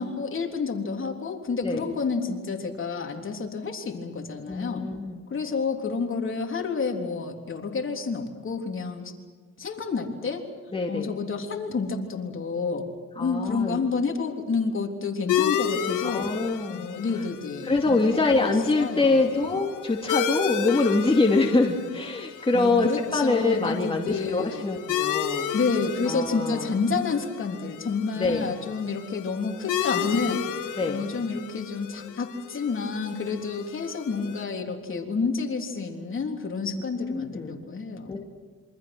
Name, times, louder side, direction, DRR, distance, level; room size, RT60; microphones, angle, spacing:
voice 1, 0.0-4.8 5.3-9.1 9.6-10.4 10.9-12.9 13.2-16.3 16.7-19.3 22.2-24.7 25.5-30.4 30.9-38.2, left 4 dB, 40° left, 2 dB, 3.6 m, -29 dB
voice 2, 4.5-5.2 10.7-11.1 13.2-13.8 16.0-16.9 17.6-25.5 26.1-26.7 28.2-28.5 30.8-31.1 37.0-37.7 38.1-38.2, left 3 dB, 20° left, 0 dB, 2.7 m, -24 dB
sound 1, 15.3-34.4, left 9 dB, 80° left, 1.9 m, -33 dB
27.5 x 24.5 x 6.2 m, 1.4 s
cardioid pair, 90°, 30 cm